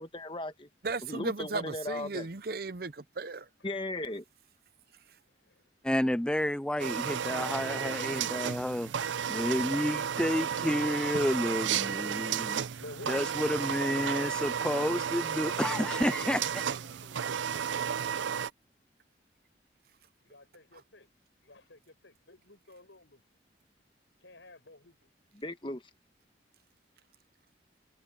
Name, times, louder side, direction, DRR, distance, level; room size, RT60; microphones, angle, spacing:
voice 1, 0.0-0.7 1.0-2.3 3.6-4.2 25.4-25.8, left 1 dB, 25° left, 1.4 m, -37 dB
voice 2, 0.8-3.4 12.3-12.4, right 3 dB, 55° right, 0.7 m, -36 dB
voice 3, 5.1-5.6 12.5-17.4 20.2-21.1 21.4-23.2 24.2-25.0, left 2 dB, 85° left, 7.8 m, -53 dB
voice 4, 5.8-8.9 9.3-12.6 13.1-16.5, left 1 dB, 5° left, 0.3 m, -30 dB
sound 1, 6.8-18.5, right 8 dB, 85° right, 0.5 m, -33 dB
head